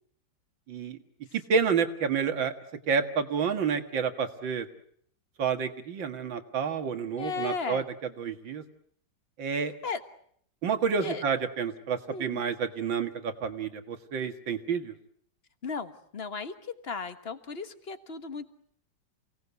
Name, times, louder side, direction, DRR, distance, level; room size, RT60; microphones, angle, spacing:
voice 1, 0.7-1.0 1.3-2.5 2.9-4.7 5.4-7.8 8.2-8.6 9.4-9.7 10.6-14.9, right 6 dB, 90° right, 7 dB, 2.5 m, -29 dB
voice 2, 7.2-7.8 9.8-10.0 11.0-11.2 12.1-12.4 15.6-18.5, left 5 dB, 35° left, 10 dB, 1.5 m, -35 dB
28.5 x 18.5 x 8.2 m, 0.66 s
omnidirectional pair, 2.0 m